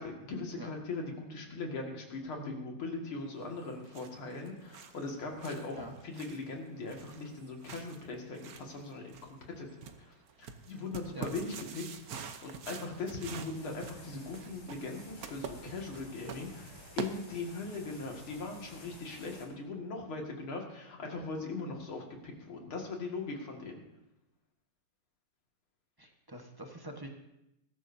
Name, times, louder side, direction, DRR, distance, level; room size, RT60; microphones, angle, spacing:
voice 1, 0.0-23.8, left 3 dB, 90° left, 1 dB, 2.9 m, -40 dB
sound 1, 3.5-17.7, right 6 dB, 55° right, 1.1 m, -47 dB
sound 2, 13.5-19.4, left 1 dB, 70° left, 4.1 m, -53 dB
voice 2, 26.0-27.1, equal, 15° right, 2 dB, 0.8 m, -45 dB
21.0 x 13.0 x 2.7 m, 0.89 s
omnidirectional pair, 2.2 m